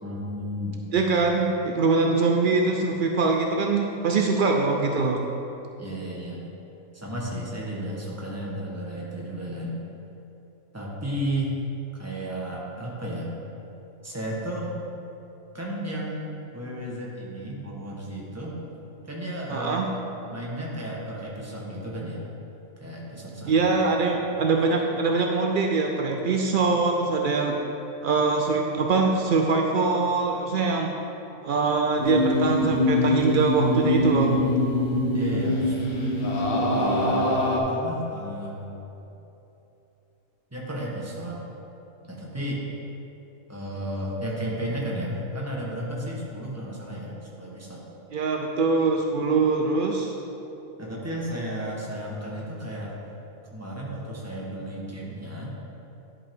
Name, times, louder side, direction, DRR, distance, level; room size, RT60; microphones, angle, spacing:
voice 1, 0.0-0.8 5.8-6.4 6.9-9.8 10.7-11.5 12.0-13.3 14.0-14.8 15.5-18.6 19.1-19.8 20.2-22.3 22.8-23.5 23.9-24.2 24.6-24.7 35.1-35.7 36.7-37.2 37.7-38.6 40.5-41.4 42.1-42.6 43.5-47.8 50.8-52.9 53.5-55.6, equal, 10° right, -4 dB, 1.1 m, -33 dB
voice 2, 0.9-5.2 19.5-19.9 23.5-27.6 28.0-30.9 31.4-34.4 48.1-50.1, right 4 dB, 80° right, 2 dB, 0.4 m, -23 dB
sound 1, 32.0-37.6, left 1 dB, 45° left, 1.0 m, -23 dB
10.5 x 5.3 x 3.6 m, 3.0 s
omnidirectional pair, 1.5 m